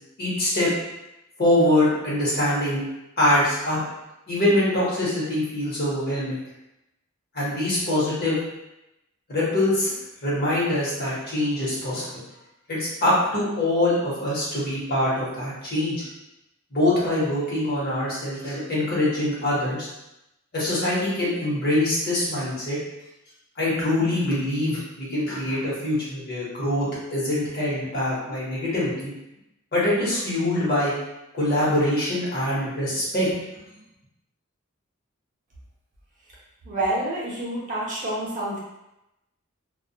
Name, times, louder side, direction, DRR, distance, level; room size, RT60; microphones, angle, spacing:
voice 1, 0.2-0.7 1.4-2.8 3.2-3.8 4.3-6.4 7.3-8.4 9.3-9.9 10.2-12.2 12.7-16.0 16.7-19.9 20.5-22.8 23.6-29.1 29.7-30.9 31.3-33.3, left 1 dB, 50° left, -7 dB, 0.9 m, -24 dB
voice 2, 36.6-38.6, right 1 dB, 40° right, -6 dB, 0.7 m, -28 dB
2.2 x 2.1 x 2.7 m, 0.91 s
head